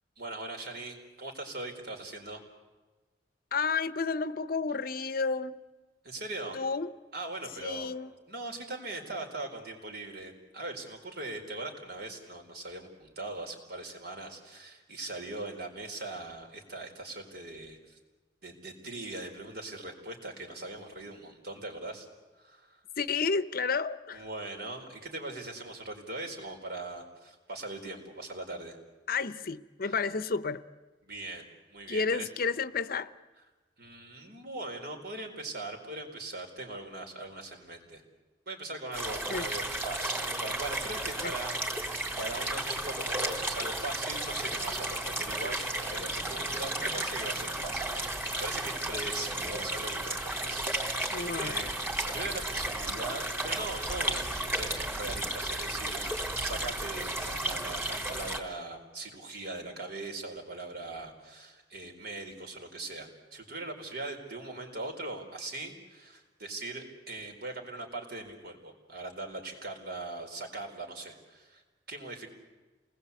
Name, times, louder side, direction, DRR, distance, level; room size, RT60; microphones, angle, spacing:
voice 1, 0.2-2.4 6.0-6.6 7.1-7.9 8.3-18.0 18.4-22.1 22.4-22.8 24.1-28.8 29.8-30.0 31.0-31.4 31.7-32.3 33.8-38.0 38.5-41.8 42.2-71.6 71.9-72.3, right 2 dB, 60° right, 3 dB, 4.5 m, -40 dB
voice 2, 3.5-5.6 6.5-6.9 7.6-8.1 23.0-24.2 29.1-30.6 31.9-33.1 39.3-39.5 41.2-41.3 51.1-51.7, left 4 dB, 55° left, 14 dB, 0.8 m, -31 dB
sound 1, 38.9-58.4, right 1 dB, 15° right, 3.6 m, -33 dB
28.5 x 20.0 x 8.3 m, 1.2 s
head